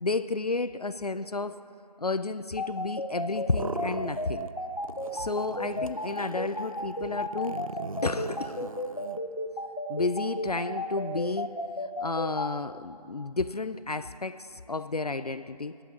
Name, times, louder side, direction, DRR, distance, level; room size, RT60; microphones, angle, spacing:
voice 1, 0.0-1.6 2.0-4.5 5.1-7.7 8.0-8.7 9.9-11.6 12.0-15.8, left 3 dB, 65° left, 13 dB, 0.5 m, -31 dB
sound 1, 2.6-12.5, left 1 dB, 45° left, 1.1 m, -33 dB
sound 2, 3.3-4.6 4.8-9.2, right 2 dB, 55° right, 0.5 m, -40 dB
17.0 x 11.5 x 7.1 m, 2.6 s
figure-of-eight pair, 180°, 21 cm